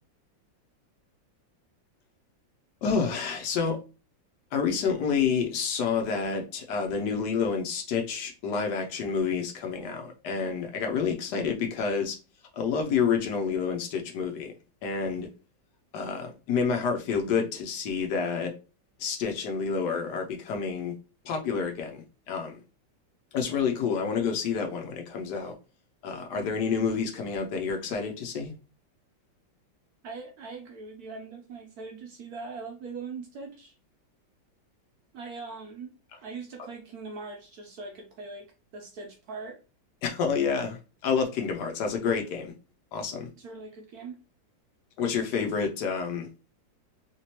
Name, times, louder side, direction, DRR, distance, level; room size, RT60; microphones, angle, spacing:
voice 1, 2.8-3.8 4.5-12.2 12.5-14.5 14.8-15.3 15.9-18.5 19.0-20.9 21.2-22.6 23.3-25.5 26.0-28.5 40.0-42.5 42.9-43.3 45.0-46.3, left 6 dB, 70° left, 3 dB, 1.1 m, -29 dB
voice 2, 30.0-33.7 35.1-35.9 36.2-39.6 43.4-44.2, right 4 dB, 65° right, 2 dB, 1.0 m, -41 dB
3.2 x 3.0 x 2.9 m, 0.32 s
omnidirectional pair, 2.0 m